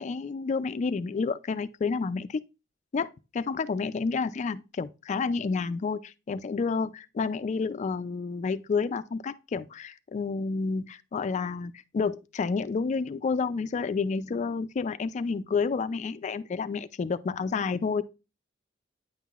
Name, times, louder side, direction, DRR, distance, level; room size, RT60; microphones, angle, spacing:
voice 1, 0.0-2.4 2.9-18.0, left 4 dB, 40° left, 0.3 m, -30 dB
9.1 x 5.6 x 2.4 m
head